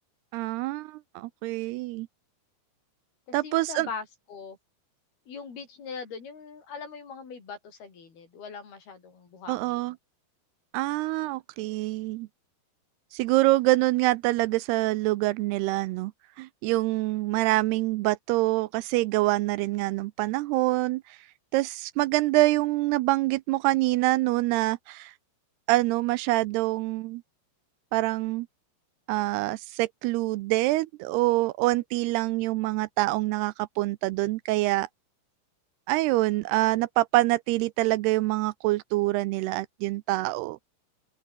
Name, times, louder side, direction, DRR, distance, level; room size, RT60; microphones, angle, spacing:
voice 1, 0.3-2.1 3.3-3.9 9.5-10.0 10.7-12.3 13.1-16.1 16.4-21.0 21.5-25.1 25.7-27.2 27.9-28.5 29.1-34.9 35.9-40.6, right 19 dB, 80° right, 2.6 m, -25 dB
voice 2, 3.3-4.6 5.3-10.0, left 5 dB, 65° left, 7.1 m, -41 dB
open air
omnidirectional pair, 4.8 m